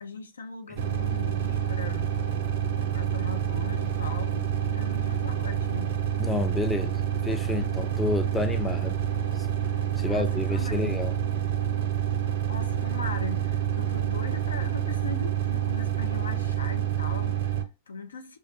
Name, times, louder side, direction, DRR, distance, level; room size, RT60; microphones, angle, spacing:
voice 1, 0.0-2.1 2.9-6.0 10.0-11.0 12.5-18.4, left 4 dB, 80° left, 0.4 m, -39 dB
sound 1, 0.8-17.6, right 10 dB, 60° right, 0.5 m, -28 dB
voice 2, 6.2-9.0 9.3-9.5 10.0-11.1, left 3 dB, 10° left, 0.3 m, -30 dB
2.3 x 2.1 x 2.6 m
figure-of-eight pair, 100°, 0 cm